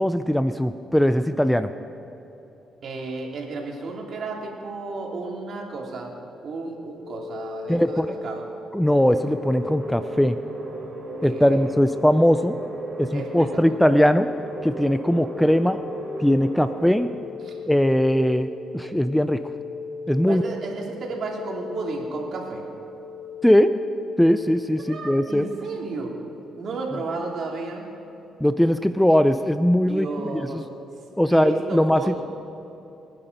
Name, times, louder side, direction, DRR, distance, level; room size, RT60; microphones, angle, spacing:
voice 1, 0.0-1.7 7.7-8.1 8.7-10.4 11.2-12.5 13.0-14.3 14.6-15.8 16.2-17.1 17.7-19.4 20.1-20.4 23.4-23.7 24.2-25.5 28.4-30.6 31.2-32.2, equal, 5° left, 11 dB, 0.5 m, -20 dB
voice 2, 2.8-6.1 6.4-8.5 11.3-11.6 13.1-13.7 17.4-17.6 20.3-22.6 24.9-26.2 26.6-27.9 29.8-30.6 31.3-32.2, right 3 dB, 60° right, 0 dB, 2.9 m, -33 dB
sound 1, 6.7-24.7, left 3 dB, 45° left, 3.6 m, -37 dB
sound 2, 8.8-16.9, right 2 dB, 45° right, 3.6 m, -37 dB
23.5 x 10.0 x 5.3 m, 3.0 s
cardioid pair, 90°, 0 cm